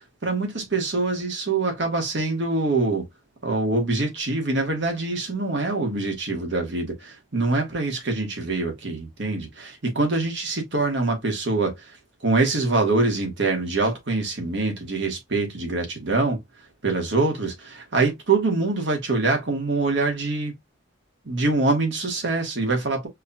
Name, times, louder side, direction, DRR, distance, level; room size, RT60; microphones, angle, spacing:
voice 1, 0.2-3.0 3.4-11.7 12.2-16.4 16.8-20.5 21.2-23.1, right 3 dB, 60° right, 1.4 m, -24 dB
4.7 x 2.8 x 2.2 m
head